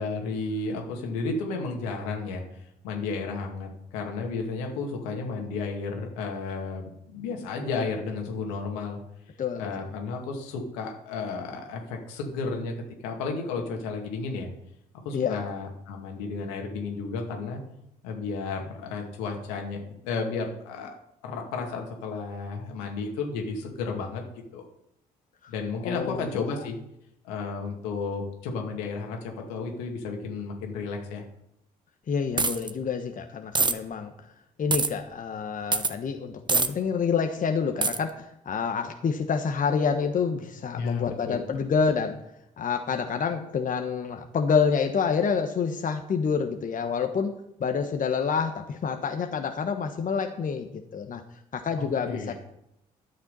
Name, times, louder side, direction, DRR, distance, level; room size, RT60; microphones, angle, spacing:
voice 1, 0.0-9.0 9.6-12.7 13.0-14.5 15.0-17.6 18.0-21.0 21.2-24.2 24.5-24.7 25.5-26.8 27.2-31.2 40.7-41.4 51.8-52.3, left 4 dB, 85° left, 2 dB, 2.2 m, -33 dB
voice 2, 9.4-9.7 15.1-15.4 25.8-26.4 32.1-34.1 34.6-42.2 42.6-51.2 51.5-52.3, left 6 dB, 50° left, 5 dB, 1.2 m, -28 dB
sound 1, 32.4-32.7 33.6-33.7 34.7-34.9 35.7-35.9 36.5-36.7 37.8-38.0, right 3 dB, 25° right, 1.2 m, -23 dB
12.0 x 6.6 x 5.5 m, 0.80 s
hypercardioid pair, 50°, 18 cm